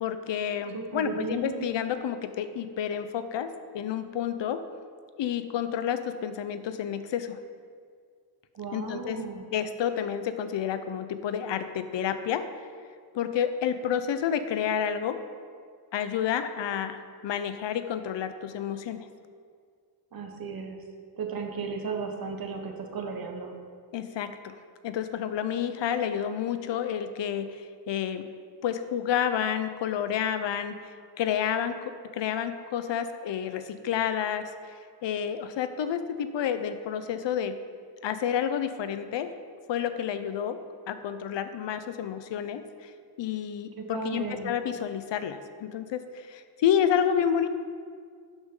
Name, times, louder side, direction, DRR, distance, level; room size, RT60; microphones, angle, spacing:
voice 1, 0.0-4.6 5.2-7.4 8.7-9.2 9.5-12.5 13.1-15.2 15.9-19.1 23.9-24.6 24.8-28.3 28.6-37.6 38.0-39.3 39.7-40.6 40.9-42.9 43.2-47.5, left 9 dB, 80° left, 10 dB, 0.6 m, -30 dB
voice 2, 0.7-1.7 8.5-9.4 20.1-20.8 21.2-23.5 43.8-44.5, right 5 dB, 55° right, 3 dB, 1.2 m, -35 dB
11.5 x 6.2 x 3.7 m, 2.1 s
wide cardioid pair, 120°, 43 cm